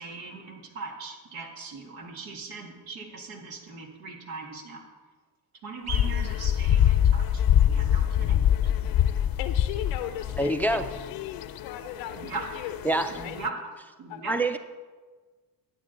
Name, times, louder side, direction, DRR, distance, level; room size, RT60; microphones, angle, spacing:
voice 1, 0.0-4.9 5.6-8.9 10.7-10.8 12.1-12.5 13.1-13.6 14.0-14.4, right 4 dB, 75° right, 1 dB, 1.9 m, -40 dB
sound 1, 5.8-11.6, right 5 dB, 30° right, 1.7 m, -48 dB
sound 2, 5.9-13.5, left 10 dB, 45° left, 0.6 m, -25 dB
voice 2, 9.4-12.2 12.5-12.8 13.1-13.4 14.1-14.2, left 12 dB, 80° left, 9 dB, 0.7 m, -37 dB
voice 3, 10.4-10.8 12.9-13.1 14.3-14.6, right 1 dB, 5° left, 10 dB, 0.4 m, -25 dB
11.5 x 8.4 x 3.8 m, 1.4 s
hypercardioid pair, 60°, 48 cm